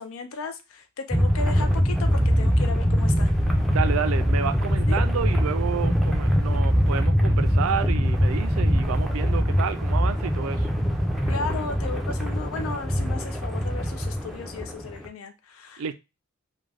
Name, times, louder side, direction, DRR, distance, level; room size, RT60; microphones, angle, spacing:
voice 1, 0.0-3.3 4.9-5.0 11.3-15.9, left 4 dB, 75° left, 0.4 m, -35 dB
sound 1, 1.1-15.1, equal, ahead, 0.4 m, -23 dB
voice 2, 3.7-10.7 15.8-15.9, right 7 dB, 75° right, 0.4 m, -30 dB
2.4 x 2.2 x 3.3 m
head